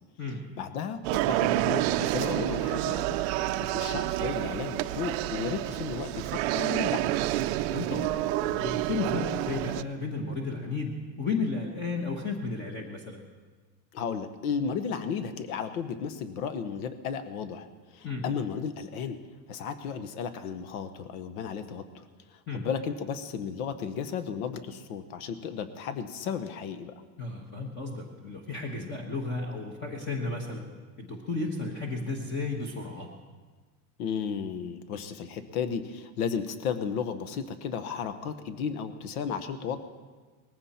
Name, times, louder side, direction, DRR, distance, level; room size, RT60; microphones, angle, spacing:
voice 1, 0.6-3.2 3.5-7.2 13.9-22.0 22.3-27.0 34.0-39.8, left 6 dB, 80° left, 11 dB, 1.2 m, -34 dB
sound 1, 1.0-9.8, right 15 dB, 50° right, 0.5 m, -29 dB
voice 2, 7.7-8.1 8.4-13.2 18.0-18.2 22.5-22.6 27.2-30.7 31.0-33.1, left 3 dB, 25° left, 2 dB, 1.2 m, -33 dB
19.5 x 15.0 x 4.3 m, 1.4 s
supercardioid pair, 165°, 43 cm